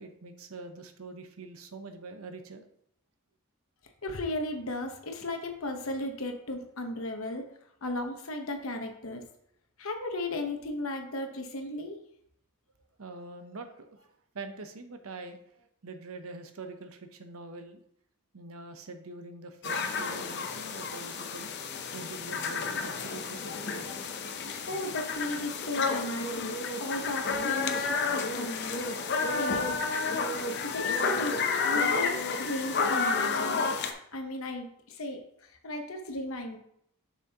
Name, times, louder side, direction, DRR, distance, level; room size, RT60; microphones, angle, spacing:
voice 1, 0.0-2.6 13.0-14.1 14.3-17.8 18.3-21.5 21.9-24.1, right 3 dB, 75° right, 7 dB, 0.8 m, -44 dB
voice 2, 4.0-7.5 7.8-9.2 9.8-12.0 24.7-26.5 26.8-30.1 30.6-31.3 31.6-33.6 34.1-35.2 35.6-36.6, left 1 dB, 70° left, 5 dB, 1.0 m, -35 dB
sound 1, 19.6-33.9, left 4 dB, 50° left, 0.6 m, -31 dB
7.2 x 6.1 x 2.9 m, 0.70 s
head